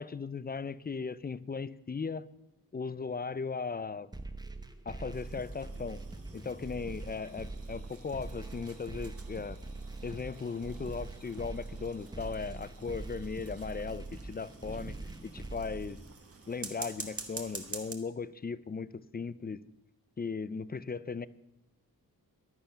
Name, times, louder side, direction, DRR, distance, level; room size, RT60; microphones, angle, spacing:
voice 1, 0.0-2.3 2.7-4.1 4.9-6.0 6.3-9.6 10.0-15.0 15.2-16.0 16.5-19.6 20.2-21.3, left 5 dB, 25° left, 18 dB, 0.4 m, -37 dB
sound 1, 4.1-16.1, right 2 dB, 10° right, 0.8 m, -43 dB
sound 2, 5.1-17.9, right 4 dB, 40° right, 1.5 m, -49 dB
sound 3, 7.2-13.9, right 4 dB, 65° right, 3.3 m, -65 dB
14.5 x 11.0 x 5.7 m, 0.89 s
wide cardioid pair, 160°, 36 cm